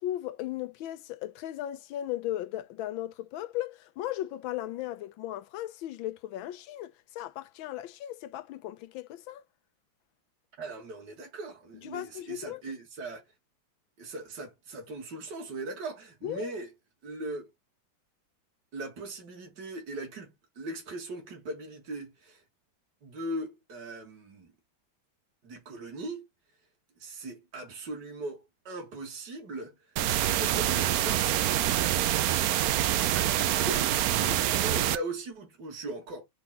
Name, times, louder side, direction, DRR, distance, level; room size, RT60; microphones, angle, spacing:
voice 1, 0.0-9.4 11.8-12.6 16.2-16.5 34.2-34.4, left 13 dB, 80° left, 1.4 m, -36 dB
voice 2, 10.6-13.2 14.0-16.7 17.0-17.5 18.7-20.3 20.6-22.4 23.0-24.5 25.4-26.3 27.0-29.7 30.2-31.4 31.7-32.3 33.1-36.2, right 2 dB, 60° right, 2.5 m, -39 dB
sound 1, 30.0-35.0, right 12 dB, 80° right, 0.8 m, -26 dB
4.8 x 3.9 x 5.6 m
omnidirectional pair, 2.2 m